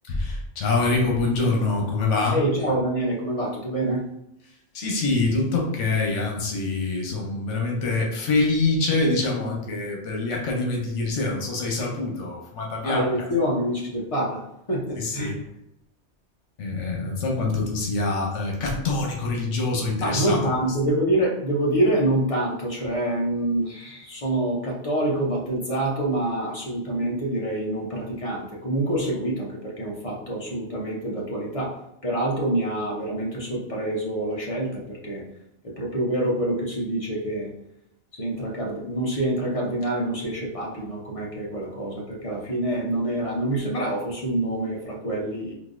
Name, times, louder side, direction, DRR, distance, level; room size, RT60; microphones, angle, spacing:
voice 1, 0.1-2.4 4.7-13.3 14.9-15.4 16.6-20.8, left 3 dB, 85° left, 0 dB, 1.1 m, -25 dB
voice 2, 2.3-4.0 12.8-14.4 14.7-15.3 20.0-31.8 32.0-35.2 35.6-37.5 38.1-45.5, right 1 dB, 35° left, -2 dB, 0.6 m, -26 dB
3.9 x 2.6 x 2.5 m, 0.80 s
omnidirectional pair, 1.2 m